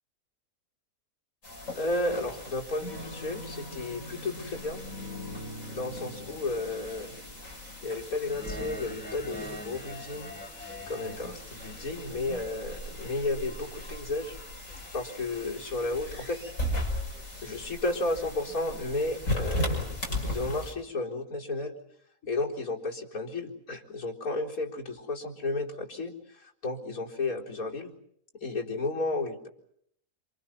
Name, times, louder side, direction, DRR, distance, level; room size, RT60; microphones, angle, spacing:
sound 1, 1.4-20.7, left 1 dB, 60° left, 6.4 m, -37 dB
voice 1, 1.7-4.8 5.7-7.2 7.8-10.3 10.9-14.4 14.9-16.4 17.4-21.8 22.2-27.9 28.4-29.5, left 2 dB, 90° left, -2 dB, 4.6 m, -33 dB
sound 2, 8.2-15.6, left 1 dB, 5° left, 2.6 m, -46 dB
28.0 x 27.0 x 5.9 m, 0.70 s
omnidirectional pair, 1.5 m